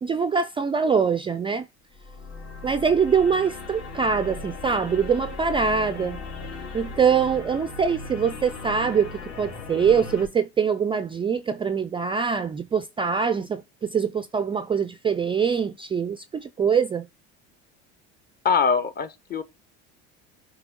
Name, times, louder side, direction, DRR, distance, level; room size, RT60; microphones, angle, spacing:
voice 1, 0.0-1.7 2.6-6.2 6.7-17.1, right 6 dB, 15° right, 0.3 m, -23 dB
sound 1, 1.9-10.3, left 3 dB, 60° left, 2.0 m, -37 dB
voice 2, 18.4-19.4, left 6 dB, 30° left, 0.7 m, -23 dB
7.8 x 2.8 x 5.0 m
supercardioid pair, 90°, 32 cm